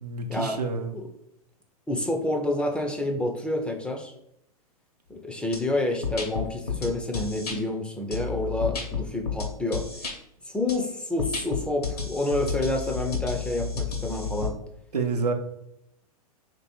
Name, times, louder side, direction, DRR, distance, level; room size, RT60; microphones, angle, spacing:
voice 1, 0.0-0.9 14.9-15.3, right 4 dB, 90° right, 4 dB, 0.7 m, -28 dB
voice 2, 1.9-4.1 5.1-9.9 10.5-14.6, left 1 dB, 5° left, 3 dB, 0.4 m, -28 dB
sound 1, 5.5-5.6 6.0-7.6 8.1-10.1 10.7-10.8 11.2-14.5, left 5 dB, 80° left, 1.0 m, -31 dB
3.0 x 2.7 x 4.2 m, 0.77 s
hypercardioid pair, 110°, 20 cm